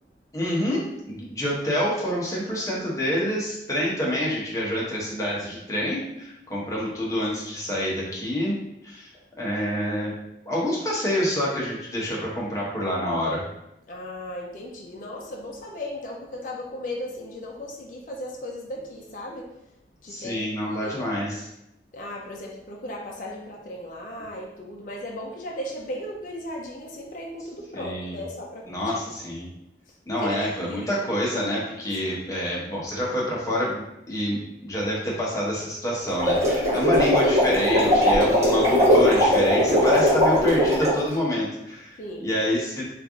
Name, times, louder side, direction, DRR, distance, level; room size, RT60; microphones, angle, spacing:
voice 1, 0.3-8.5 8.8-9.1 9.4-10.1 10.5-13.4 20.1-21.5 27.7-28.2 28.7-29.5 30.1-42.0 42.2-42.9, equal, 20° left, -5 dB, 0.9 m, -27 dB
voice 2, 13.9-19.5 20.0-20.4 20.6-21.0 21.9-28.6 30.2-30.8 42.0-42.3, left 1 dB, 45° left, -1 dB, 0.5 m, -36 dB
sound 1, 36.1-41.0, equal, 40° right, 1.3 m, -19 dB
3.2 x 2.5 x 3.6 m, 0.83 s
head